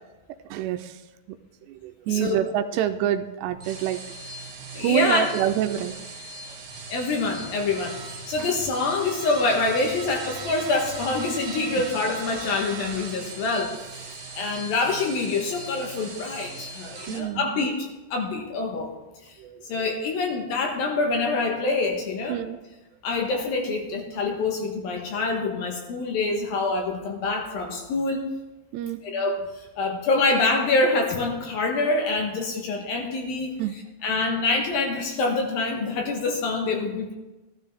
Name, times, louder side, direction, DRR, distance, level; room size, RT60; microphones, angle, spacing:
voice 1, 0.5-1.1 1.6-4.0 4.8-6.6 8.4-8.5 17.0-17.6 19.4-19.9 22.3-22.6 28.7-29.0 33.6-33.8, right 11 dB, 80° right, 9 dB, 2.6 m, -27 dB
sound 1, 3.5-17.2, right 3 dB, 60° right, 3.1 m, -39 dB
voice 2, 4.7-5.3 6.9-13.7 14.4-17.8 18.1-18.9 19.7-22.4 23.0-28.2 29.0-33.5 34.0-37.1, left 3 dB, 70° left, 2 dB, 2.6 m, -26 dB
14.5 x 13.0 x 3.5 m, 1.1 s
omnidirectional pair, 5.0 m